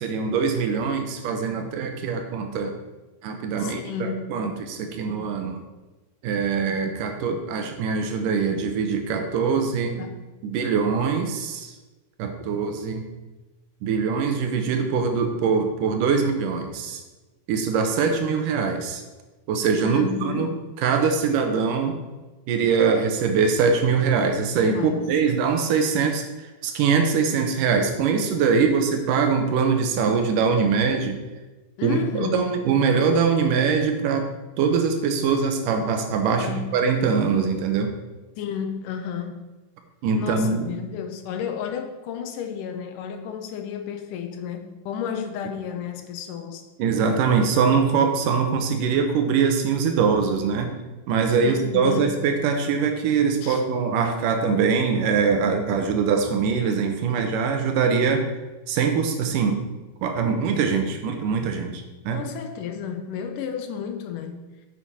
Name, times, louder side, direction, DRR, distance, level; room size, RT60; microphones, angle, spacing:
voice 1, 0.0-2.8 3.2-5.6 6.2-10.0 10.4-11.8 12.2-13.1 13.8-17.0 17.5-19.0 19.5-20.5 20.8-22.0 22.5-31.2 31.8-34.3 34.6-37.9 40.0-40.7 46.8-50.8 51.1-58.3 58.7-59.6 60.0-62.2, right 5 dB, 85° right, 5 dB, 2.6 m, -23 dB
voice 2, 3.6-4.4 10.0-10.2 19.8-20.5 24.7-25.1 31.8-32.6 36.3-36.8 38.4-39.4 40.2-46.6 51.4-52.2 53.4-53.6 62.1-64.4, left 7 dB, 80° left, 7 dB, 2.4 m, -32 dB
9.4 x 7.6 x 4.3 m, 1.2 s
omnidirectional pair, 3.7 m